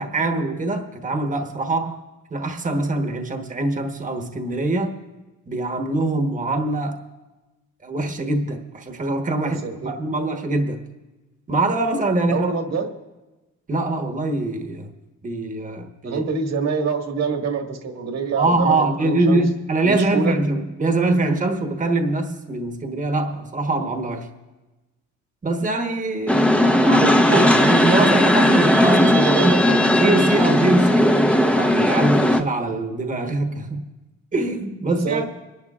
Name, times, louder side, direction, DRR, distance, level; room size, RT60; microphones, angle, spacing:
voice 1, 0.0-2.0 2.3-5.0 5.5-7.0 7.8-10.8 11.5-12.5 13.7-14.9 15.2-16.2 18.4-24.3 25.4-29.2 29.4-29.6 30.0-31.2 31.5-33.9 34.3-35.2, right 2 dB, 25° right, 5 dB, 1.2 m, -23 dB
voice 2, 9.6-9.9 12.3-12.9 16.0-19.4 19.8-20.3 29.1-29.6 34.9-35.2, right 5 dB, 60° right, 3 dB, 1.8 m, -25 dB
sound 1, 26.3-32.4, left 1 dB, 5° left, 0.7 m, -17 dB
25.5 x 11.5 x 2.4 m, 1.1 s
cardioid pair, 90°, 30 cm